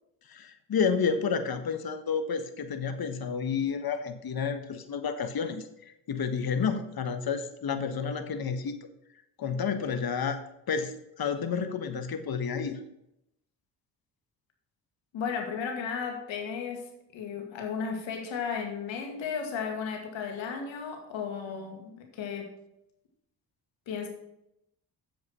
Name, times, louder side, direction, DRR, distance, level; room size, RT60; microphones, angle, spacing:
voice 1, 0.3-8.7 9.4-10.4 10.7-12.8, left 6 dB, 50° left, 9 dB, 1.4 m, -30 dB
voice 2, 15.1-22.5 23.9-24.1, left 6 dB, 70° left, 3 dB, 2.3 m, -34 dB
7.7 x 7.6 x 5.6 m, 0.83 s
hypercardioid pair, 50°, 47 cm